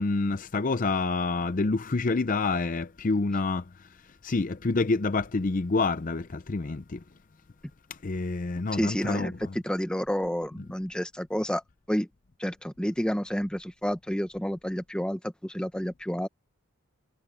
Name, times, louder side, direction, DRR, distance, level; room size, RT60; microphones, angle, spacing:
voice 1, 0.0-3.6 4.2-7.0 8.0-9.5, left 3 dB, 40° left, 0.5 m, -27 dB
voice 2, 8.7-9.3 9.6-11.6 11.9-12.1 12.4-16.3, equal, 5° left, 1.0 m, -30 dB
head